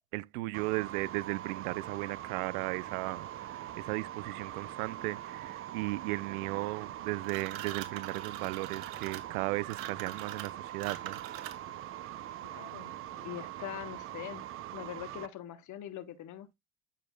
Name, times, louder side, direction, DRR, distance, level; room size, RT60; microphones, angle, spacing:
voice 1, 0.1-11.2, right 21 dB, 85° right, 0.5 m, -36 dB
sound 1, 0.5-15.3, right 13 dB, 30° right, 0.5 m, -43 dB
sound 2, 7.2-11.8, right 13 dB, 70° right, 1.6 m, -43 dB
voice 2, 12.4-16.5, left 11 dB, 40° left, 1.1 m, -43 dB
12.5 x 4.4 x 2.2 m
supercardioid pair, 125°, 43 cm